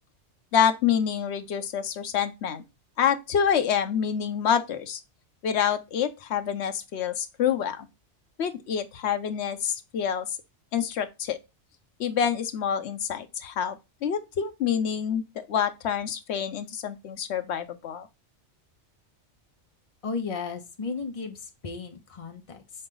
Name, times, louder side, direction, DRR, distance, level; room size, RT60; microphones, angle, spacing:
voice 1, 0.5-2.6 3.0-5.0 5.4-7.9 8.4-10.3 10.7-11.4 12.0-18.1, left 8 dB, 75° left, 1.0 m, -27 dB
voice 2, 20.0-22.9, left 4 dB, 30° left, 0.9 m, -35 dB
6.7 x 4.0 x 3.8 m
omnidirectional pair, 1.2 m